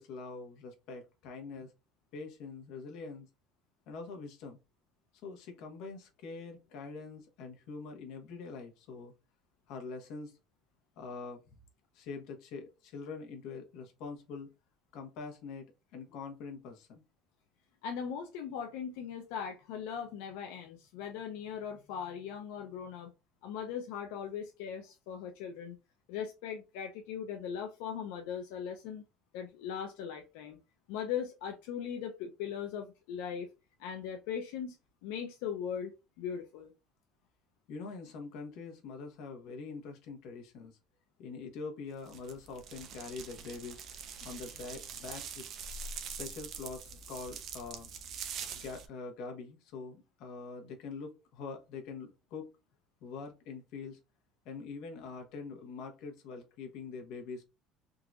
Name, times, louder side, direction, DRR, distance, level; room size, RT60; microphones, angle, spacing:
voice 1, 0.0-1.7 2.1-3.3 3.9-4.6 5.2-9.1 9.7-10.3 11.0-11.4 11.9-14.5 14.9-17.0 37.7-40.8 41.2-43.8 44.2-45.4 46.2-47.9 48.5-52.5 53.0-54.0 54.4-57.4, left 4 dB, 65° left, 1.2 m, -44 dB
voice 2, 17.8-23.1 23.4-25.8 26.1-29.0 29.3-30.6 30.9-33.5 33.8-34.8 35.0-36.7, left 8 dB, 90° left, 0.5 m, -39 dB
sound 1, 42.1-48.9, right 6 dB, 45° right, 0.7 m, -44 dB
3.8 x 2.8 x 2.4 m
cardioid pair, 145°, 0 cm